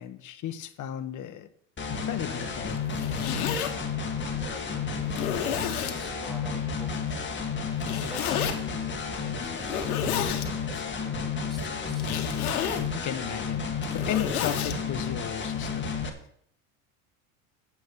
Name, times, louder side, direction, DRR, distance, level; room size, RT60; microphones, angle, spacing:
voice 1, 0.0-1.5 1.9-3.0 13.0-16.1, left 10 dB, 45° left, 10 dB, 1.3 m, -35 dB
sound 1, 1.8-16.1, left 5 dB, 25° left, 2.1 m, -32 dB
Zipper (clothing), 2.8-3.7 4.4-4.5 5.1-6.0 7.8-8.6 9.6-10.5 11.9-12.9 13.7-14.8, left 9 dB, 85° left, 1.4 m, -30 dB
voice 2, 4.4-5.1 5.8-7.4 8.0-12.1, left 1 dB, ahead, 1 dB, 3.0 m, -47 dB
8.9 x 7.3 x 6.6 m, 0.65 s
hypercardioid pair, 90°, 42 cm